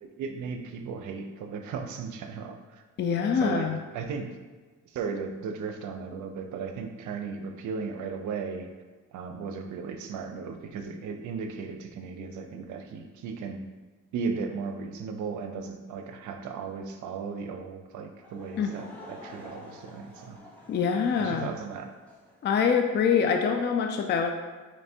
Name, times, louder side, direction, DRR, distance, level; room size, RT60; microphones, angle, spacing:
voice 1, 0.0-2.8 3.3-4.3 4.9-8.7 9.1-13.7 14.1-20.4 21.2-21.9, right 5 dB, 75° right, 6 dB, 0.6 m, -36 dB
voice 2, 3.0-3.8 18.6-18.7 20.7-21.5 22.4-24.3, left 6 dB, 35° left, 4 dB, 0.4 m, -25 dB
Laughter / Crowd, 18.2-22.4, left 1 dB, 5° left, 1.1 m, -49 dB
3.3 x 3.0 x 4.3 m, 1.3 s
cardioid pair, 90°, 30 cm